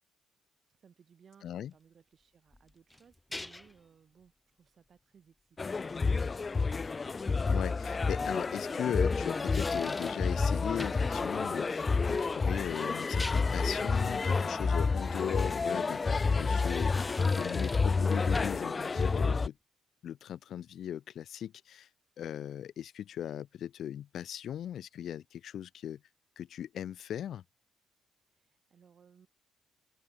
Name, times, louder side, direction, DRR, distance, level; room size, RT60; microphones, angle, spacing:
voice 1, 0.8-6.5 28.4-29.3, right 7 dB, 50° right, 6.4 m, -62 dB
voice 2, 1.4-1.7 7.5-19.6 20.0-21.9 22.2-26.0 26.4-27.4, left 10 dB, 70° left, 1.8 m, -38 dB
sound 1, 2.5-3.8 7.0-7.1 9.1-10.3 10.8-11.1 13.0-13.7 16.5-18.0 18.3-18.7, left 1 dB, 10° left, 1.0 m, -43 dB
sound 2, 5.6-19.5, left 4 dB, 30° left, 0.6 m, -29 dB
cardioid pair, 90°, 0 cm